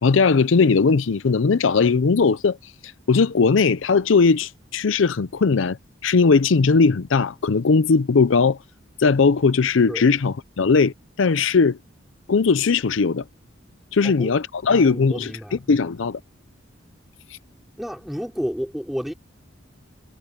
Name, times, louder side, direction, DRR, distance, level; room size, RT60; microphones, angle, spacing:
voice 1, 0.0-2.6 3.1-5.8 6.0-8.6 9.0-10.9 11.2-11.8 12.3-13.2 13.9-15.3 15.7-16.2, left 4 dB, 80° left, 0.5 m, -18 dB
voice 2, 14.0-14.4 14.7-15.6 17.8-19.1, equal, ahead, 3.4 m, -31 dB
head